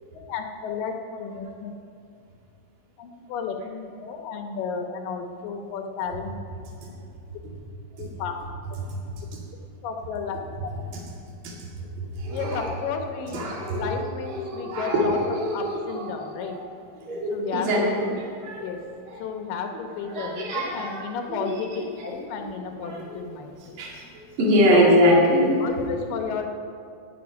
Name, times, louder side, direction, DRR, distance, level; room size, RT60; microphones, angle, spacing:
voice 1, 0.3-1.7 3.0-6.4 8.0-8.3 9.8-10.4 12.3-15.2 15.5-16.6 17.3-18.2 18.6-18.8 19.2-21.7 22.0-23.8 24.7-25.0 25.6-26.5, left 6 dB, 70° left, 4 dB, 2.6 m, -32 dB
voice 2, 12.2-12.7 13.3-13.9 14.3-16.6 17.1-18.1 18.4-18.8 19.1-19.2 20.1-21.0 21.3-21.9 22.8-23.1 23.8-24.0 24.4-25.6, equal, 40° right, -3 dB, 2.6 m, -23 dB
17.5 x 7.9 x 5.4 m, 2.4 s
omnidirectional pair, 4.3 m